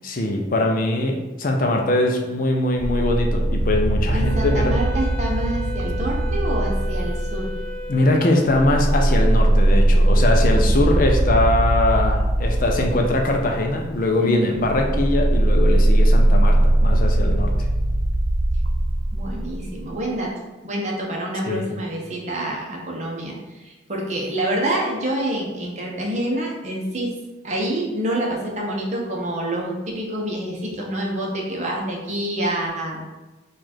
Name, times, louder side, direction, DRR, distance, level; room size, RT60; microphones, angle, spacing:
voice 1, 0.0-4.8 7.9-17.5 21.5-21.7, left 1 dB, 45° left, 2 dB, 0.5 m, -21 dB
sound 1, 2.8-8.0 8.4-20.0, right 1 dB, 80° right, 0.5 m, -20 dB
voice 2, 4.1-7.5 10.5-11.0 14.2-14.6 19.1-20.3 20.6-27.1 27.4-33.0, right 1 dB, 40° right, -2 dB, 0.9 m, -27 dB
Wind instrument woodwind instrument, 4.2-8.8, left 1 dB, 15° left, 1.2 m, -35 dB
4.7 x 2.4 x 4.3 m, 1.2 s
head